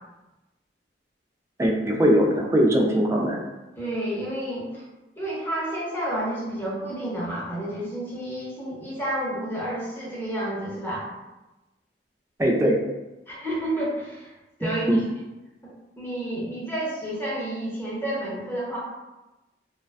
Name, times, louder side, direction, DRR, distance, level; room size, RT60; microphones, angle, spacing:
voice 1, 1.6-3.4 12.4-12.8 14.6-15.0, equal, 15° right, 0 dB, 0.3 m, -21 dB
voice 2, 3.8-4.8 5.2-11.1 13.3-14.3 14.6-14.9 16.0-18.8, right 1 dB, 10° left, -6 dB, 0.7 m, -30 dB
2.4 x 2.2 x 2.3 m, 1.0 s
head